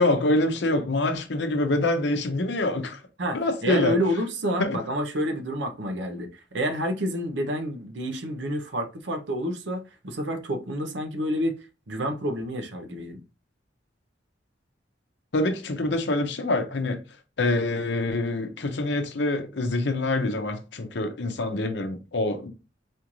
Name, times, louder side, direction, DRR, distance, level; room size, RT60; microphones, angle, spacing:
voice 1, 0.0-3.0 3.3-4.0 4.6-4.8 15.3-17.0 17.4-22.5, left 2 dB, 65° left, 0.7 m, -25 dB
voice 2, 3.2-11.6 11.9-13.2, equal, 70° right, 0.8 m, -29 dB
4.3 x 2.5 x 3.0 m
head